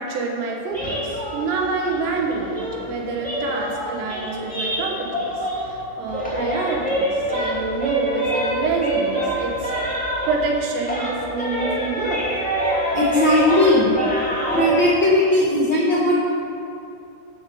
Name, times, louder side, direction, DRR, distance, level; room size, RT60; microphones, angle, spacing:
voice 1, 0.0-5.3 5.7-9.7 10.3-12.3, right 3 dB, 75° right, 0 dB, 3.5 m, -27 dB
sound 1, 0.7-5.8 6.1-10.6 10.8-14.7, right 1 dB, 10° left, 0.5 m, -26 dB
voice 2, 12.9-13.9 14.5-16.2, left 1 dB, 85° left, -8 dB, 1.0 m, -18 dB
12.0 x 5.3 x 7.7 m, 2.7 s
omnidirectional pair, 5.2 m